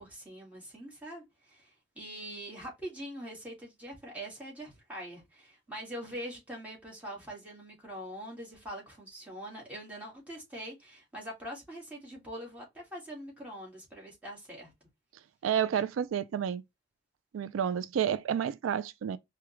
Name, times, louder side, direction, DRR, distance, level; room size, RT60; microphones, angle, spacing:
voice 1, 0.0-14.7, right 1 dB, 10° right, 1.7 m, -43 dB
voice 2, 15.4-16.6 17.3-19.2, right 8 dB, 85° right, 0.3 m, -30 dB
4.8 x 2.3 x 2.9 m
head